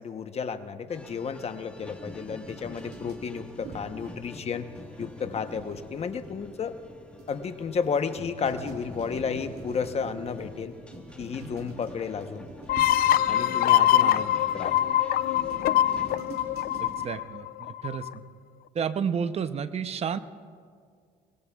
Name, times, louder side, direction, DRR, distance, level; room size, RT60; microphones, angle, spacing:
voice 1, 0.0-4.7 5.0-6.8 7.3-10.7 11.2-12.5 13.3-14.8, left 6 dB, 40° left, 9 dB, 0.9 m, -32 dB
sound 1, 0.9-16.2, left 1 dB, 5° left, 1.4 m, -46 dB
sound 2, 2.1-17.1, right 3 dB, 65° right, 2.5 m, -47 dB
sound 3, 12.7-18.1, left 12 dB, 60° left, 0.4 m, -23 dB
voice 2, 16.8-18.2 18.7-20.2, right 7 dB, 40° right, 12 dB, 0.6 m, -31 dB
24.0 x 19.5 x 2.3 m, 2.1 s
cardioid pair, 110°, 17 cm